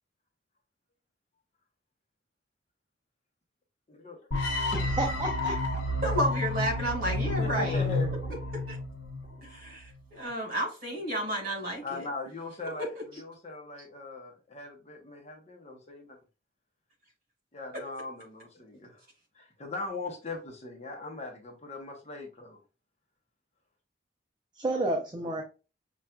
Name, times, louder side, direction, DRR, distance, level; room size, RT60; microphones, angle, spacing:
voice 1, 3.9-4.2 6.8-6.9 7.2-8.2 11.8-16.2 17.5-19.0 19.3-22.6 25.2-25.4, left 3 dB, 35° left, 0.9 m, -40 dB
sound 1, 4.3-9.4, left 2 dB, 70° left, 0.7 m, -30 dB
voice 2, 4.7-5.5 24.6-25.4, right 2 dB, 25° right, 0.5 m, -30 dB
voice 3, 6.0-7.8 8.7-8.8 9.5-12.0, right 1 dB, 50° right, 1.8 m, -31 dB
5.6 x 2.4 x 2.3 m
head